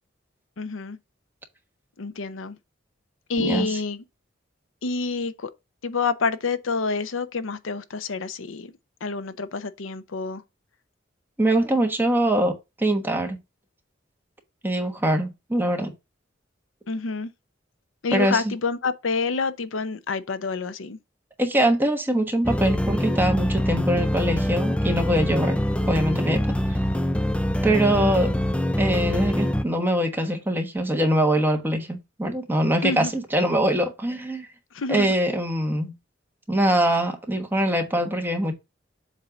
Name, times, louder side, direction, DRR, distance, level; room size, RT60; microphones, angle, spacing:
voice 1, 0.6-1.0 2.0-2.6 3.3-4.0 4.8-5.5 5.8-8.7 9.0-10.4 16.9-17.3 18.0-21.0 32.8-33.1 34.7-35.1, left 4 dB, 85° left, 0.7 m, -28 dB
voice 2, 3.4-3.8 11.4-13.4 14.6-15.9 18.1-18.5 21.4-25.6 25.9-26.4 27.6-28.3 28.8-34.5 34.9-35.9 36.5-38.5, right 1 dB, 10° right, 1.2 m, -23 dB
sound 1, 22.4-29.6, left 1 dB, 5° left, 0.3 m, -24 dB
7.4 x 2.6 x 5.8 m
head